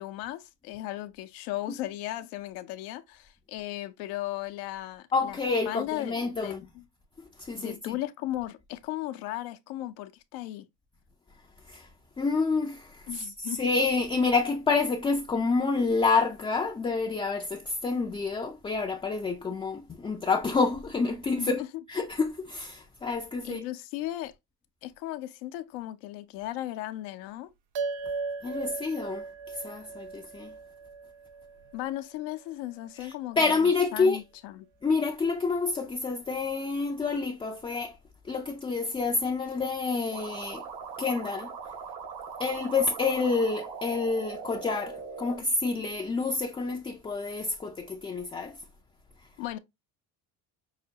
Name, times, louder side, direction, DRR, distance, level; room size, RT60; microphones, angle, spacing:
voice 1, 0.0-5.4 5.6-6.2 6.4-6.8 7.6-10.7 13.1-13.6 21.4-21.7 23.4-24.3 24.8-27.5 31.7-34.7 49.4-49.6, left 15 dB, 80° left, 0.7 m, -36 dB
voice 2, 5.1-6.7 7.2-8.0 11.7-11.9 12.2-21.6 21.9-23.6 28.4-30.5 33.0-34.2 34.8-38.0 38.2-40.6 41.0-41.5 42.4-48.6, left 4 dB, 15° left, 0.3 m, -28 dB
sound 1, 27.7-32.4, right 4 dB, 50° right, 0.7 m, -37 dB
sound 2, 40.1-45.4, right 5 dB, 80° right, 2.0 m, -40 dB
5.7 x 2.1 x 2.7 m
supercardioid pair, 80°, 50 cm